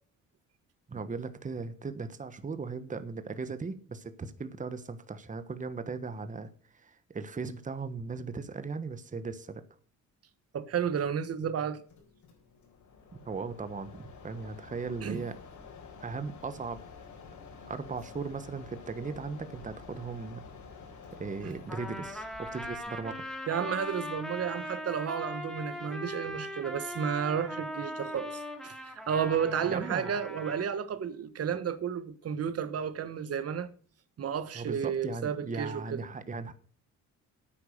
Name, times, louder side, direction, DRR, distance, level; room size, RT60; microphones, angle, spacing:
voice 1, 0.9-9.6 13.1-15.3 16.0-16.8 17.6-20.5 21.2-23.2 29.7-30.2 34.5-36.5, right 4 dB, 25° right, 1.2 m, -38 dB
voice 2, 10.5-11.8 15.0-15.2 21.4-21.5 23.5-33.7 34.2-36.0, right 7 dB, 55° right, 1.4 m, -32 dB
Mechanisms, 11.9-24.3, left 5 dB, 70° left, 4.0 m, -50 dB
Trumpet, 21.7-30.7, left 1 dB, ahead, 2.4 m, -40 dB
9.5 x 8.9 x 6.6 m
cardioid pair, 90°, 30 cm